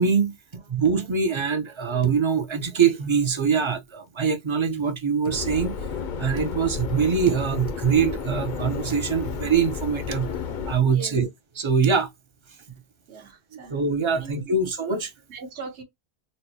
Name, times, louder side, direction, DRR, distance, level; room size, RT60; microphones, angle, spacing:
voice 1, 0.0-5.8 6.2-10.3 10.7-11.3 11.5-12.1 13.7-15.1, right 6 dB, 40° right, 0.4 m, -23 dB
Subway metro underground, 5.3-10.7, left 6 dB, 55° left, 0.6 m, -32 dB
voice 2, 13.1-13.7 14.1-14.6 15.3-15.8, right 4 dB, 70° right, 1.2 m, -40 dB
4.1 x 2.1 x 2.7 m
omnidirectional pair, 1.2 m